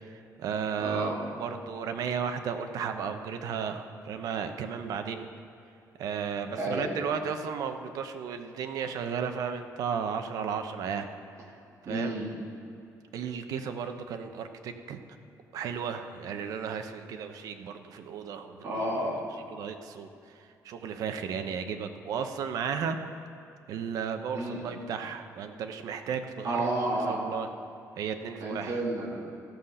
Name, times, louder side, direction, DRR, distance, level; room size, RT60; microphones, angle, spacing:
voice 1, 0.0-5.3 6.0-11.1 11.9-12.1 13.1-15.0 15.5-18.6 19.5-20.1 20.4-23.0 23.7-27.5 28.0-28.8, right 7 dB, 70° right, 7 dB, 0.7 m, -34 dB
voice 2, 0.8-1.2 6.6-6.8 11.9-12.3 18.6-19.2 24.3-24.6 26.4-27.2 28.4-29.2, right 1 dB, 50° right, -4 dB, 2.6 m, -31 dB
14.5 x 5.7 x 6.6 m, 2.6 s
cardioid pair, 150°, 6 cm